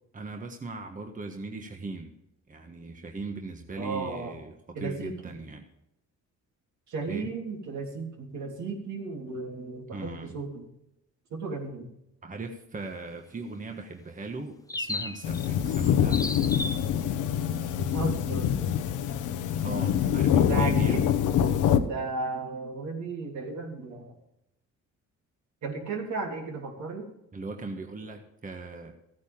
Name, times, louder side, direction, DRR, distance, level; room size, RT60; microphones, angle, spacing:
voice 1, 0.1-2.1 2.5-5.7 7.1-7.3 9.9-10.4 12.2-16.2 19.6-21.0 27.3-28.9, right 3 dB, 25° right, 3 dB, 1.4 m, -38 dB
voice 2, 3.8-4.3 4.7-5.3 6.9-10.7 11.3-11.9 17.7-18.7 20.4-21.0 21.9-24.1 25.6-27.1, right 3 dB, 70° right, 1 dB, 3.4 m, -34 dB
sound 1, 14.7-15.5 15.7-16.9, left 2 dB, 10° left, 0.8 m, -34 dB
sound 2, 15.2-21.8, left 9 dB, 80° left, 1.1 m, -25 dB
14.5 x 9.3 x 3.7 m, 0.84 s
cardioid pair, 90°, 30 cm